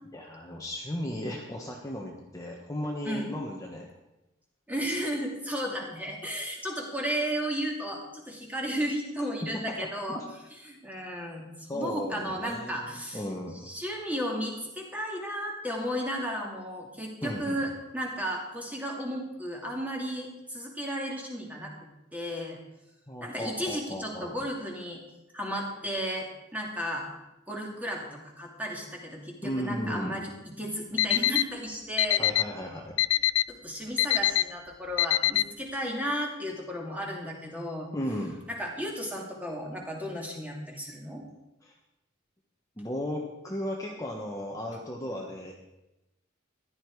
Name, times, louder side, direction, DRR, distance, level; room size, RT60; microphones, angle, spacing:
voice 1, 0.1-3.9 10.1-10.2 11.7-13.6 17.2-17.6 23.1-24.3 29.4-30.2 32.2-32.9 37.9-38.4 41.7-41.8 42.8-45.5, left 1 dB, 15° left, -1 dB, 1.4 m, -35 dB
voice 2, 4.7-10.2 10.6-13.2 13.6-21.7 22.1-22.6 23.2-25.0 25.3-27.0 27.5-32.2 33.5-37.9 38.5-41.2, equal, 10° right, -1 dB, 2.7 m, -34 dB
Alarm, 31.0-31.4 32.0-32.4 33.0-33.4 34.0-34.4 35.0-35.4, left 14 dB, 70° left, 0.4 m, -22 dB
15.5 x 12.0 x 4.8 m, 0.94 s
head